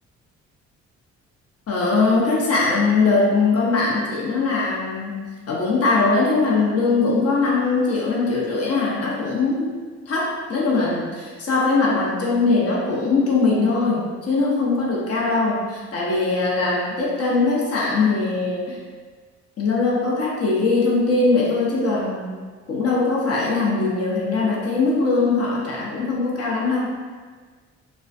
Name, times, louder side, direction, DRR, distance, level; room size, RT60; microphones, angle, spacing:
voice 1, 1.7-9.7 10.1-18.8 19.6-22.3 22.7-26.9, left 3 dB, 50° left, -4 dB, 0.7 m, -21 dB
2.4 x 2.2 x 2.4 m, 1.5 s
cardioid pair, 90°, 30 cm